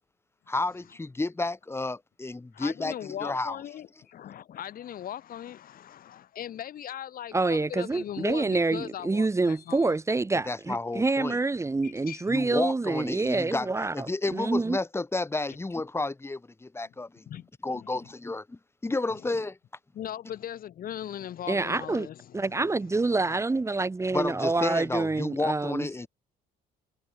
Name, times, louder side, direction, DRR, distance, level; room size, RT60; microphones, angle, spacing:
voice 1, 0.5-3.6 10.5-11.4 12.3-13.7 13.9-17.3 17.6-19.6 24.1-26.1, left 2 dB, 15° left, 5.9 m, -31 dB
voice 2, 2.5-9.9 11.8-12.3 17.3-17.5 17.7-17.9 19.9-22.5, left 11 dB, 60° left, 5.3 m, -39 dB
voice 3, 7.3-14.8 21.5-22.1 22.3-25.9, right 3 dB, 15° right, 2.4 m, -27 dB
cardioid pair, 110°, 17 cm